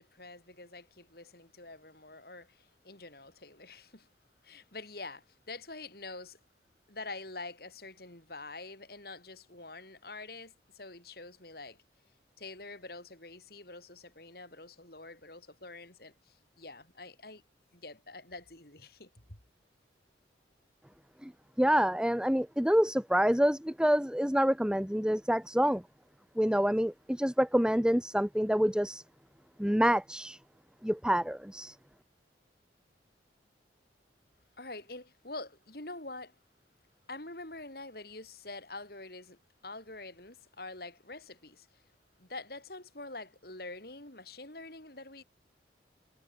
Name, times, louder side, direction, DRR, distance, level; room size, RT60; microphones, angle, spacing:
voice 1, 0.0-4.1 4.4-6.4 6.9-11.8 12.4-17.4 17.7-19.4 34.6-36.3 37.1-41.8 42.2-45.2, left 2 dB, 55° left, 5.5 m, -46 dB
voice 2, 21.6-25.8 26.4-29.0 29.6-30.4 30.8-31.8, equal, 5° right, 1.0 m, -27 dB
head